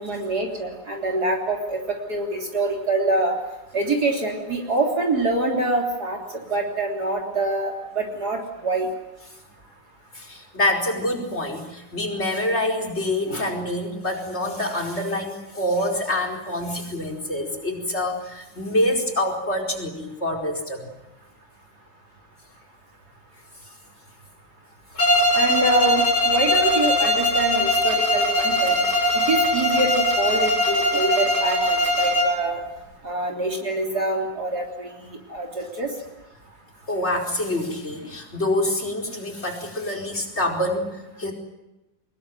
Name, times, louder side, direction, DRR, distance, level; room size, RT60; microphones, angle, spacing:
voice 1, 0.0-3.4 3.7-6.2 6.5-8.9 25.3-28.8 29.2-32.6 33.0-34.9 35.3-35.9, right 2 dB, 55° right, 1 dB, 3.9 m, -25 dB
voice 2, 10.1-20.9 25.0-25.3 28.6-28.8 36.9-41.3, left 1 dB, 35° left, 2 dB, 5.0 m, -26 dB
Bowed string instrument, 25.0-32.5, equal, 50° left, 5.8 m, -21 dB
25.5 x 20.5 x 9.3 m, 0.98 s
omnidirectional pair, 2.1 m